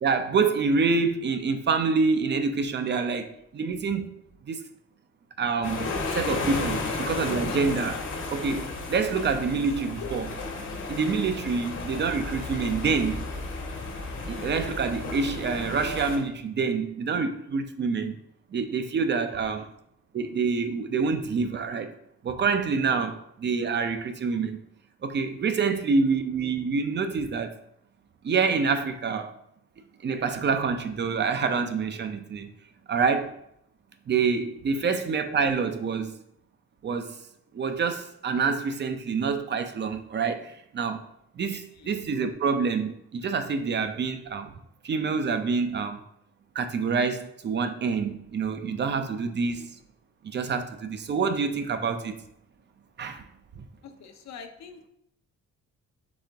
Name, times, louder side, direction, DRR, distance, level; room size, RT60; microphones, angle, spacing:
voice 1, 0.0-4.1 4.4-4.6 5.4-7.9 8.3-10.4 10.9-13.3 14.3-18.2 18.5-19.7 20.1-21.9 22.2-24.6 25.0-27.6 28.2-29.4 30.0-32.5 32.9-33.3 34.1-36.2 36.8-37.2 37.5-41.0 41.4-44.5 44.8-46.0 46.5-49.7 50.2-52.1 53.0-53.2 53.6-53.7, right 5 dB, 35° right, 0.5 m, -27 dB
sound 1, 5.6-16.2, left 3 dB, 80° left, 1.2 m, -33 dB
voice 2, 6.0-6.4 6.8-7.1 7.4-7.7 9.3-9.5 11.7-11.9 19.3-19.8 25.8-26.0 34.8-35.1 41.7-42.0 49.4-49.7 53.8-54.9, left 6 dB, 65° left, 0.7 m, -44 dB
4.2 x 3.6 x 3.4 m
cardioid pair, 90°, 30 cm